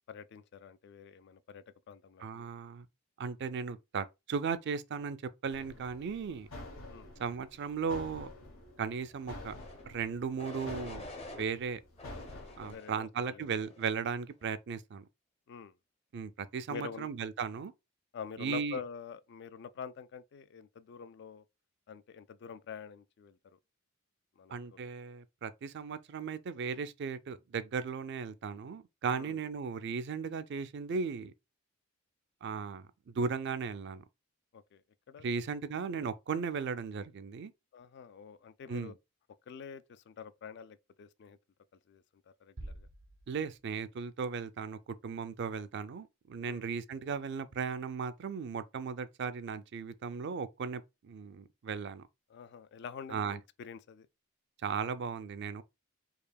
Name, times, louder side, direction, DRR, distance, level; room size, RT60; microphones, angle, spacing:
voice 1, 0.1-2.5 6.9-7.1 12.6-13.5 15.5-15.7 16.7-17.1 18.1-21.4 21.9-23.4 24.4-24.8 29.1-29.4 34.5-34.8 35.1-35.3 37.7-38.9 39.5-41.4 41.9-42.0 42.4-42.9 46.5-46.6 52.3-54.1, left 6 dB, 55° left, 0.3 m, -46 dB
voice 2, 2.2-2.9 3.2-5.2 5.4-6.5 7.2-8.3 8.8-9.6 9.8-11.0 11.3-11.8 12.6-15.0 16.1-17.7 18.4-18.8 24.5-31.3 32.4-34.0 35.2-37.5 38.7-38.9 43.3-52.0 53.1-53.4 54.6-55.6, right 5 dB, 60° right, 0.4 m, -36 dB
sound 1, 5.5-12.7, left 2 dB, 90° left, 1.2 m, -49 dB
sound 2, 9.4-9.8 10.4-11.4 12.0-13.0 13.6-14.0, left 2 dB, 30° left, 0.7 m, -47 dB
sound 3, 42.6-44.4, right 1 dB, 90° right, 0.7 m, -49 dB
4.7 x 2.8 x 2.3 m
head